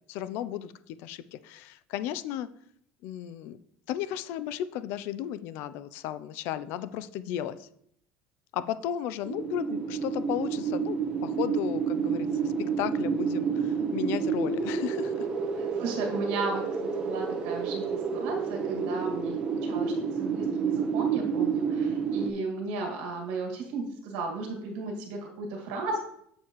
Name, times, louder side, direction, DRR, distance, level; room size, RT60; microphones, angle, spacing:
voice 1, 0.1-2.5 3.0-3.6 3.9-7.7 8.5-15.3 18.7-18.9, left 11 dB, 60° left, 14 dB, 0.4 m, -34 dB
sound 1, 9.2-22.3, right 6 dB, 25° right, 0.9 m, -29 dB
voice 2, 15.6-16.6 17.0-19.9 20.2-26.0, right 3 dB, 80° right, 1 dB, 1.9 m, -34 dB
7.2 x 6.5 x 3.0 m, 0.71 s
cardioid pair, 170°, 4 cm